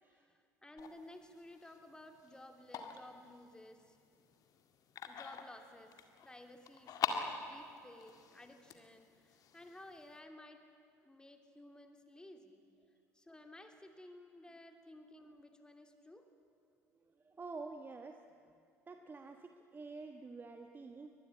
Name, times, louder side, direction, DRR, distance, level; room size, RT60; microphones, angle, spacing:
voice 1, 0.1-4.0 5.1-10.6 11.1-12.6 13.1-16.3, left 1 dB, 10° left, 5 dB, 2.9 m, -55 dB
sound 1, 0.8-10.2, left 7 dB, 45° left, 2.0 m, -45 dB
voice 2, 17.2-18.2 18.9-21.1, right 3 dB, 25° right, 6 dB, 1.3 m, -48 dB
23.5 x 20.5 x 8.7 m, 2.3 s
figure-of-eight pair, 60°, 8 cm